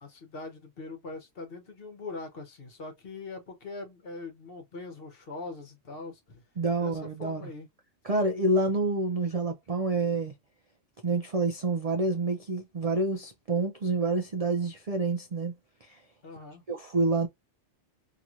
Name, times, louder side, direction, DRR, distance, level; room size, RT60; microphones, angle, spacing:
voice 1, 0.0-6.4 6.8-7.7 16.2-16.6, left 3 dB, 50° left, 1.1 m, -42 dB
voice 2, 6.6-7.5 8.0-10.3 11.0-15.5 15.8-16.0 16.7-17.3, right 2 dB, 60° right, 0.3 m, -28 dB
2.9 x 2.8 x 2.4 m
omnidirectional pair, 1.3 m